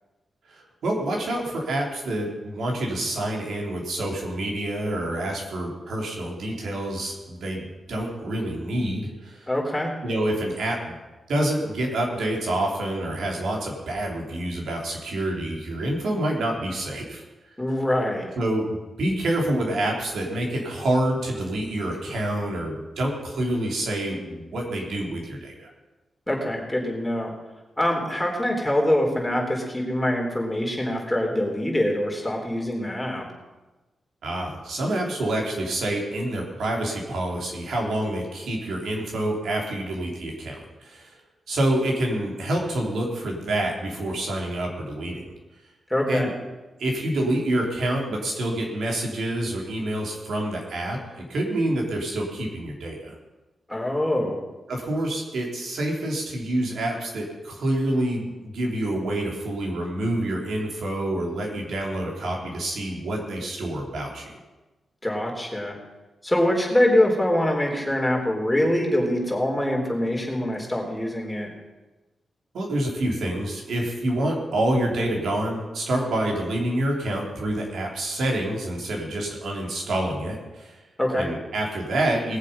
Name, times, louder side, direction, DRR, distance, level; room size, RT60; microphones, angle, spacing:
voice 1, 0.5-9.5 10.0-11.0 11.3-17.2 18.4-25.7 34.2-41.2 41.5-45.3 46.1-46.3 46.8-53.1 54.7-64.3 72.5-80.8 81.2-82.4, right 1 dB, 80° right, 0 dB, 3.3 m, -27 dB
voice 2, 9.5-9.9 17.6-18.4 26.3-27.3 27.8-33.2 45.9-46.3 53.7-54.4 65.0-65.8 66.2-71.5 81.0-81.3, left 1 dB, 10° left, -1 dB, 3.8 m, -24 dB
20.0 x 7.4 x 5.5 m, 1.1 s
cardioid pair, 80°, 0 cm